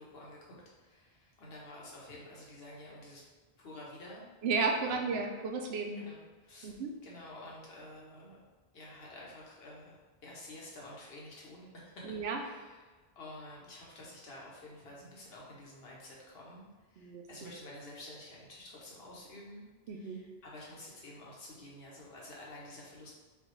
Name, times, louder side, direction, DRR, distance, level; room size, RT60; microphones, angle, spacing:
voice 1, 0.0-3.2 3.6-4.2 4.8-5.2 6.0-6.7 7.0-8.4 8.7-12.0 12.3-19.6 19.9-23.1, left 1 dB, 70° left, -4 dB, 1.2 m, -50 dB
voice 2, 4.4-6.0 6.6-6.9 12.0-12.4 17.0-17.5 19.9-20.2, right 4 dB, 80° right, 2 dB, 0.9 m, -33 dB
5.4 x 2.4 x 3.1 m, 1.3 s
omnidirectional pair, 1.0 m